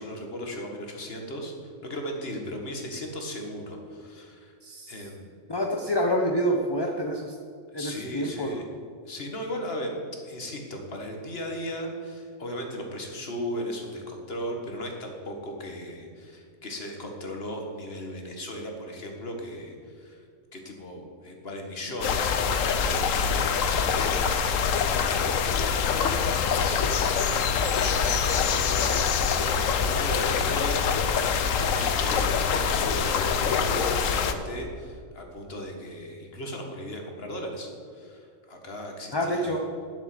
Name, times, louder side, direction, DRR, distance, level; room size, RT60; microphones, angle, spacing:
voice 1, 0.0-4.5 4.9-5.4 7.7-8.6 9.1-10.0 10.2-20.2 20.5-30.8 31.6-39.6, equal, 50° left, 2 dB, 1.9 m, -37 dB
voice 2, 4.6-4.9 5.5-7.4 7.7-8.6 39.1-39.7, equal, 25° left, 2 dB, 0.7 m, -27 dB
sound 1, 22.0-34.3, left 6 dB, 75° left, 1.2 m, -25 dB
11.5 x 7.3 x 7.8 m, 2.2 s
omnidirectional pair, 1.4 m